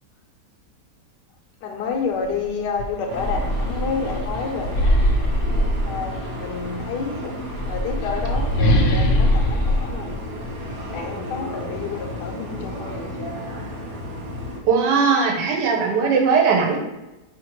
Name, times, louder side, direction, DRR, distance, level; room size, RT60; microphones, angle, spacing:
voice 1, 1.6-4.9 5.9-7.3 7.7-10.1 10.9-13.3, left 5 dB, 85° left, 1 dB, 1.2 m, -29 dB
sound 1, 2.2-2.4 2.8-6.4 7.3-11.0, equal, 65° left, 0.8 m, -22 dB
sound 2, 3.1-14.6, equal, 55° right, 0.9 m, -33 dB
voice 2, 14.6-16.8, right 5 dB, 85° right, 1 dB, 1.4 m, -19 dB
5.0 x 3.2 x 3.0 m, 1.0 s
omnidirectional pair, 1.8 m